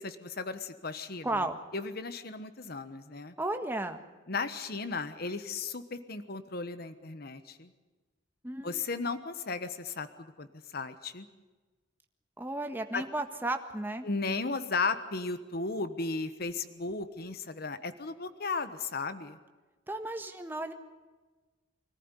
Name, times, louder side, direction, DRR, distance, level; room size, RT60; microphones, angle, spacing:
voice 1, 0.0-1.4 1.7-3.3 4.3-7.7 8.6-10.5 10.7-11.3 12.9-13.0 14.0-19.4, left 4 dB, 55° left, 11 dB, 1.2 m, -35 dB
voice 2, 1.2-1.6 3.4-4.0 8.4-8.8 12.4-14.1 19.9-20.7, right 2 dB, 10° right, 6 dB, 1.6 m, -34 dB
25.0 x 14.5 x 9.9 m, 1.3 s
head